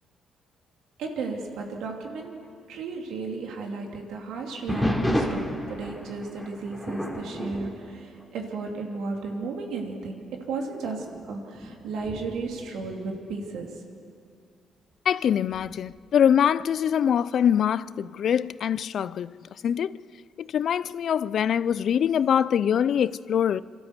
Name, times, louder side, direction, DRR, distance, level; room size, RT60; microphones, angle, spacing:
voice 1, 1.0-2.4 2.7-10.2 10.5-13.8, right 4 dB, 80° right, 2.9 m, -34 dB
sound 1, 4.7-8.8 9.1-9.5 10.1-10.2 11.0-13.7 15.5-16.0, equal, ahead, 3.2 m, -32 dB
voice 2, 15.1-19.3 19.6-20.0 20.4-23.6, left 9 dB, 60° left, 0.4 m, -23 dB
26.0 x 13.0 x 8.2 m
cardioid pair, 90°, 0 cm